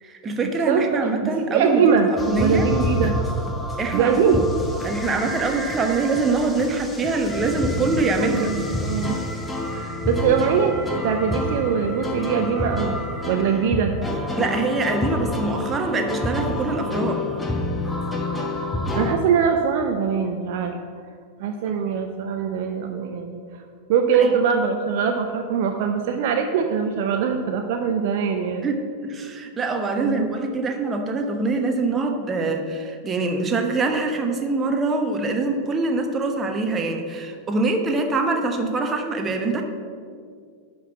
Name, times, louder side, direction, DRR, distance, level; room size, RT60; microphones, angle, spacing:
voice 1, 0.0-1.8 2.1-2.7 3.8-4.4 4.8-8.5 14.4-17.2 21.7-21.8 24.2-24.3 28.6-39.6, right 3 dB, 20° right, 4 dB, 1.1 m, -24 dB
voice 2, 0.7-3.2 3.9-4.5 8.2-9.2 9.7-10.7 11.0-13.0 13.3-13.9 19.0-20.7 21.4-23.6 23.9-28.7 30.0-30.3, right 6 dB, 50° right, 5 dB, 0.6 m, -22 dB
sound 1, 2.2-19.2, left 1 dB, 10° left, 1.0 m, -28 dB
11.0 x 3.9 x 7.1 m, 2.1 s
figure-of-eight pair, 90°, 0 cm